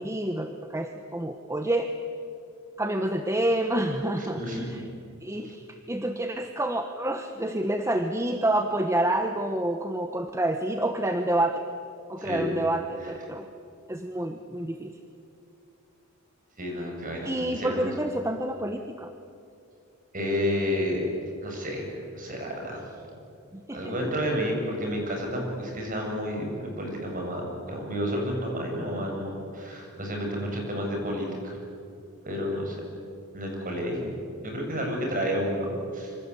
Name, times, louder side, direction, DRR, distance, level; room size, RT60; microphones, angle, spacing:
voice 1, 0.0-1.9 2.8-4.8 5.2-11.7 12.1-13.5 13.9-14.9 17.2-19.1 23.5-23.9, right 1 dB, 15° right, 6 dB, 1.1 m, -28 dB
voice 2, 4.2-4.7 12.2-12.5 13.0-13.1 16.6-17.9 20.1-21.0 21.4-22.8 23.7-31.6 32.2-32.8 33.3-34.1 34.4-36.2, equal, 40° right, 1 dB, 7.1 m, -30 dB
26.5 x 25.0 x 8.4 m, 2.6 s
head